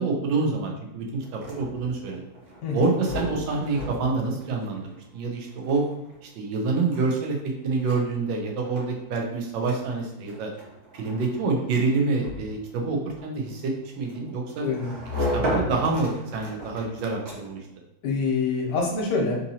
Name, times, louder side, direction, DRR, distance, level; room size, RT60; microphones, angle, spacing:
voice 1, 0.0-2.2 2.7-4.8 5.1-5.8 6.2-10.5 10.9-13.7 14.0-14.7 15.3-17.7, right 3 dB, 80° right, 1 dB, 1.4 m, -27 dB
sound 1, 1.2-17.7, equal, 60° right, 1.4 m, -36 dB
voice 2, 14.6-15.0 18.0-19.4, left 4 dB, 70° left, -1 dB, 1.3 m, -26 dB
3.8 x 2.7 x 2.7 m, 0.86 s
omnidirectional pair, 2.0 m